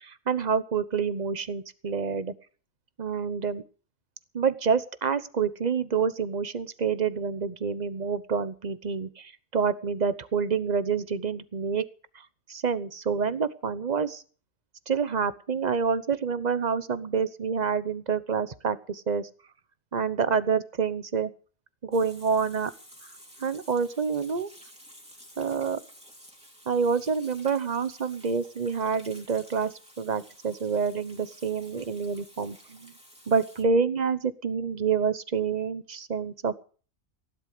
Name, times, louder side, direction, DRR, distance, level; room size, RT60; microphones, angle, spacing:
voice 1, 0.0-2.3 3.0-3.6 4.3-11.8 12.1-12.2 12.5-14.2 14.9-19.3 19.9-21.3 21.8-22.7 23.4-24.5 25.4-25.8 26.7-32.9 33.3-36.6, right 6 dB, 35° right, 14 dB, 1.0 m, -27 dB
Water tap faucet / Sink (filling or washing), 21.9-33.6, equal, 5° right, 2.9 m, -52 dB
16.5 x 11.5 x 6.7 m, 0.42 s
omnidirectional pair, 1.4 m